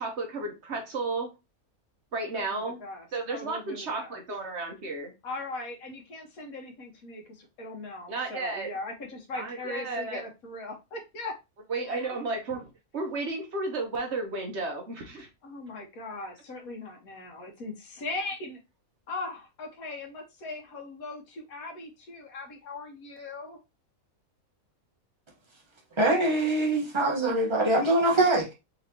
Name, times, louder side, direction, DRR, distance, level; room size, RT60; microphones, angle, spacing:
voice 1, 0.0-1.3 2.1-2.8 3.1-5.1 8.1-8.7 9.3-10.2 11.7-15.3, right 3 dB, 55° right, 1.1 m, -33 dB
voice 2, 2.3-4.2 5.2-11.3 11.8-12.2 15.4-18.6 19.1-23.6, left 3 dB, 80° left, 1.5 m, -39 dB
voice 3, 26.0-28.5, right 2 dB, 20° right, 1.0 m, -23 dB
4.2 x 3.1 x 2.7 m
omnidirectional pair, 1.5 m